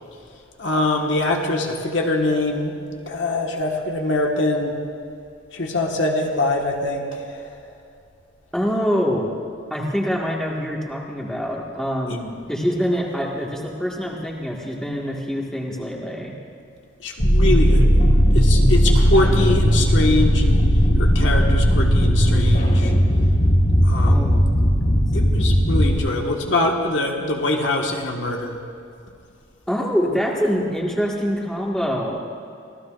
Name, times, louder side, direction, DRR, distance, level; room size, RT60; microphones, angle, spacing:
voice 1, 0.6-2.8 3.1-4.8 5.5-7.8 12.1-12.2 17.0-17.9 18.3-20.7 21.0-22.9 23.8-24.4 25.1-28.6, left 2 dB, 75° left, 1 dB, 1.7 m, -23 dB
voice 2, 8.5-9.3 9.7-16.3 24.1-24.3 29.7-32.2, equal, 5° left, -3 dB, 1.8 m, -25 dB
sound 1, 17.2-26.0, equal, 50° left, 4.6 m, -16 dB
25.5 x 16.0 x 2.6 m, 2.5 s
head